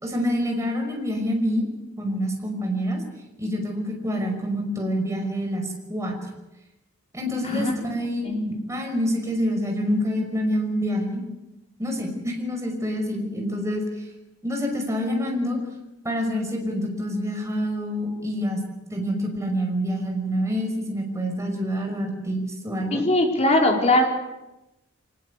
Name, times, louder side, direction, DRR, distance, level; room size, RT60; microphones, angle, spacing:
voice 1, 0.0-1.7 2.0-3.0 3.4-6.1 7.1-8.3 8.7-11.2 11.8-13.8 14.4-15.6 16.0-18.6 18.9-23.0, equal, 15° right, 2 dB, 5.8 m, -27 dB
voice 2, 22.9-24.0, left 1 dB, 35° left, 1 dB, 4.5 m, -20 dB
24.5 x 20.0 x 8.4 m, 0.96 s
head